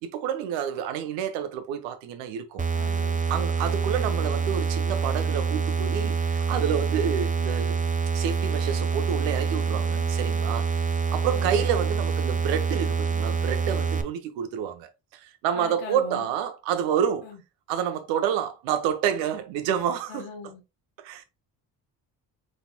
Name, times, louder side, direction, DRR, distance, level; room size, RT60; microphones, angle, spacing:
voice 1, 0.0-2.6 3.3-7.8 8.1-17.3 17.7-20.5 21.0-21.2, right 9 dB, 85° right, 0.9 m, -29 dB
sound 1, 2.6-14.0, right 5 dB, 15° right, 0.9 m, -26 dB
voice 2, 2.7-3.2 9.7-10.1 11.3-11.7 15.5-16.3 17.2-17.4 20.1-20.6, left 5 dB, 80° left, 1.6 m, -40 dB
5.0 x 4.1 x 2.2 m
hypercardioid pair, 55°, 44 cm